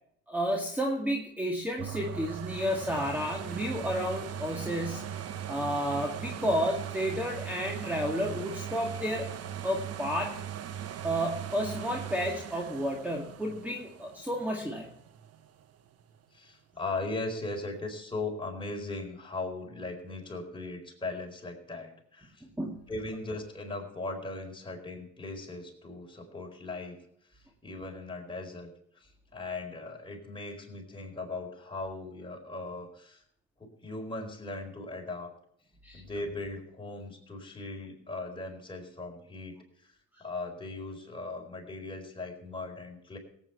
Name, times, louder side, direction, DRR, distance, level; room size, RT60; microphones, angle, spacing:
voice 1, 0.3-9.3 9.6-10.4 11.0-14.9 22.6-22.9 35.8-36.0, equal, 5° right, 1 dB, 2.1 m, -31 dB
sound 1, 1.8-15.5 16.0-16.1, right 9 dB, 55° right, 1.2 m, -39 dB
voice 2, 16.3-22.4 22.9-27.0 27.3-33.2 33.6-35.3 35.9-39.6 39.8-39.9 40.2-43.2, left 2 dB, 15° left, 1 dB, 4.5 m, -38 dB
17.5 x 9.1 x 4.6 m, 0.74 s
supercardioid pair, 75°, 29 cm